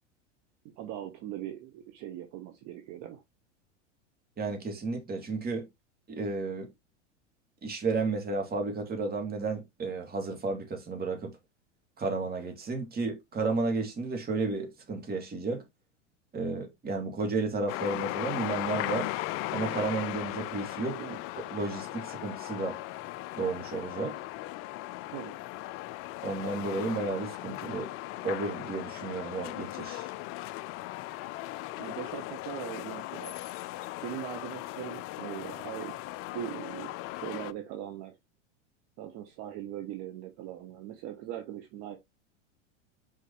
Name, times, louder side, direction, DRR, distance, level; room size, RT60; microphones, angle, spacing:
voice 1, 0.8-3.2 21.0-21.2 25.1-25.4 31.8-33.3 34.0-35.9 36.3-38.2 39.0-42.0, right 11 dB, 45° right, 1.5 m, -40 dB
voice 2, 4.4-5.7 6.1-6.7 7.6-11.3 12.0-15.6 16.3-19.1 19.5-21.0 21.4-22.8 23.3-24.2 26.2-27.9 28.2-30.1, right 3 dB, 25° right, 2.8 m, -32 dB
sound 1, 17.7-37.5, left 17 dB, 35° left, 0.5 m, -38 dB
5.6 x 5.6 x 3.3 m
hypercardioid pair, 100°, 37 cm